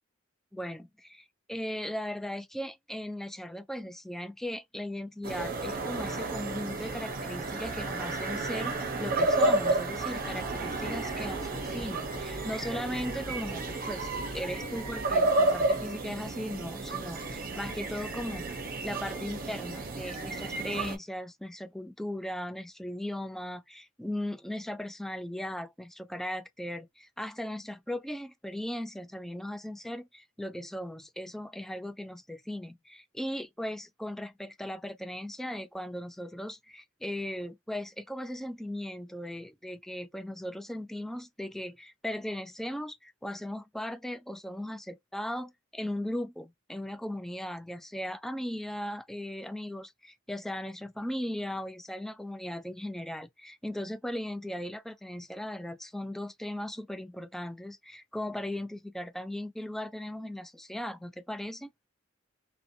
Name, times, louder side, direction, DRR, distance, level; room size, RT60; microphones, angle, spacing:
voice 1, 0.5-61.7, left 1 dB, ahead, 0.3 m, -38 dB
sound 1, 5.2-21.0, right 2 dB, 50° right, 0.7 m, -31 dB
sound 2, 10.1-15.2, equal, 50° left, 0.8 m, -44 dB
2.5 x 2.1 x 2.6 m
head